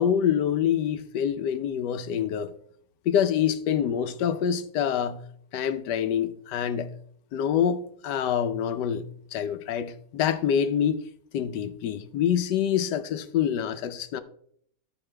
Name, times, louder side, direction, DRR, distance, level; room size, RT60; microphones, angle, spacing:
voice 1, 0.0-2.5 3.1-5.2 5.5-6.9 7.3-9.0 9.3-11.1 11.3-14.2, left 9 dB, 85° left, 1.3 m, -26 dB
13.5 x 5.1 x 3.3 m
omnidirectional pair, 1.8 m